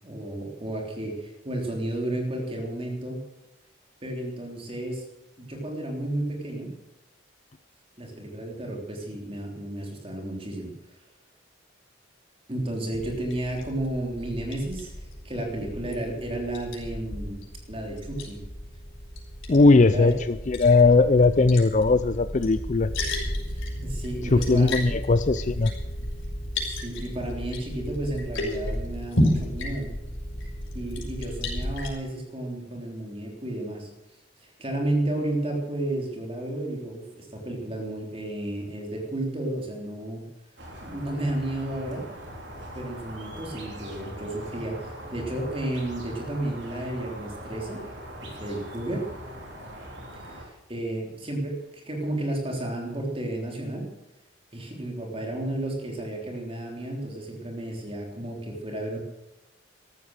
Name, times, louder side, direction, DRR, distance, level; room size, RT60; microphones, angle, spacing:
voice 1, 0.0-3.2 4.0-5.0 5.4-6.7 8.0-10.7 12.5-17.4 17.7-18.4 19.5-20.1 23.5-24.9 26.7-29.9 30.7-33.9 34.4-40.3 40.8-42.1 42.7-47.8 48.2-49.1 50.1-53.9 54.5-59.0, right 1 dB, 30° right, 1 dB, 3.5 m, -32 dB
Liquid, 12.9-31.9, left 1 dB, 80° left, 5.5 m, -33 dB
voice 2, 19.5-22.9 24.3-25.7, left 3 dB, 40° left, 12 dB, 0.5 m, -19 dB
sound 1, 40.6-50.4, right 1 dB, 60° right, 4.0 m, -41 dB
14.5 x 13.0 x 6.6 m, 0.97 s
head